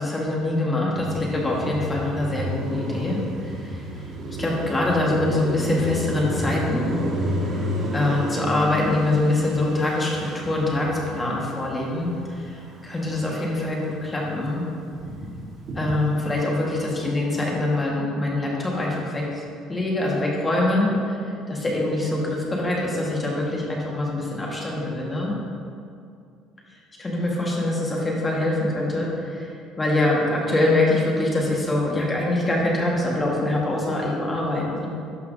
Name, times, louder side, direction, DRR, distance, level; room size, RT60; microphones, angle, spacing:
voice 1, 0.0-3.8 4.4-7.0 7.5-14.6 15.7-21.2 21.5-25.3 27.0-34.9, left 2 dB, 15° left, -3 dB, 1.4 m, -24 dB
Car passing by, 0.9-13.4 13.7-16.2, equal, 40° right, 1.3 m, -31 dB
12.0 x 5.6 x 2.6 m, 2.5 s
cardioid pair, 140°, 0 cm